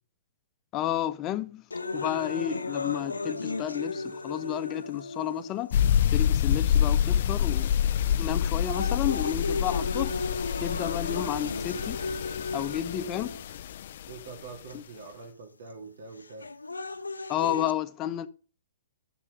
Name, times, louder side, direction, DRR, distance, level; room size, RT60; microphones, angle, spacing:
voice 1, 0.7-1.6 1.9-5.7 6.1-7.7 8.2-10.2 10.6-12.0 12.5-13.4 14.7-14.8 17.3-18.3, left 12 dB, 30° left, 1.1 m, -31 dB
sound 1, 1.7-5.7 6.5-6.6 7.4-7.7 8.2-13.7 14.7-14.8 16.2-17.7, left 3 dB, 90° left, 0.9 m, -35 dB
sound 2, 5.7-14.1, left 9 dB, 55° left, 0.6 m, -27 dB
voice 2, 14.1-16.5, right 4 dB, 65° right, 2.5 m, -44 dB
11.0 x 7.4 x 5.3 m
hypercardioid pair, 120°, 0 cm